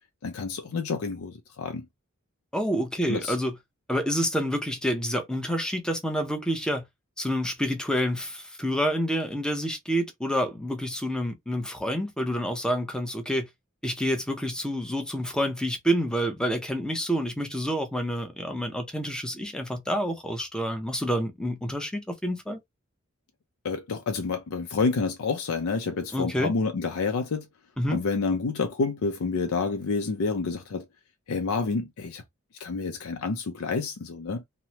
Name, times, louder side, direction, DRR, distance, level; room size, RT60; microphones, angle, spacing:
voice 1, 0.2-1.9 3.1-3.4 23.6-27.5 27.9-30.8 31.3-32.2 32.6-34.4, left 4 dB, 85° left, 0.5 m, -28 dB
voice 2, 2.5-3.5 3.9-6.8 7.2-13.5 13.8-22.6 26.1-26.5 27.8-28.0, equal, 5° left, 0.5 m, -28 dB
2.9 x 2.0 x 2.7 m
head